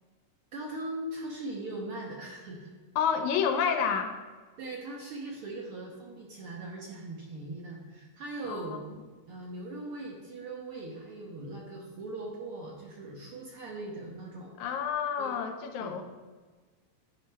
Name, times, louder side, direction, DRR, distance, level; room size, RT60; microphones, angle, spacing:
voice 1, 0.5-2.7 4.6-8.8 9.3-14.5 15.2-15.3 15.8-15.9, right 2 dB, 65° right, -1 dB, 1.5 m, -40 dB
voice 2, 3.0-4.1 8.5-8.8 14.6-16.0, left 7 dB, 80° left, 6 dB, 2.0 m, -29 dB
10.5 x 5.5 x 3.3 m, 1.4 s
omnidirectional pair, 3.4 m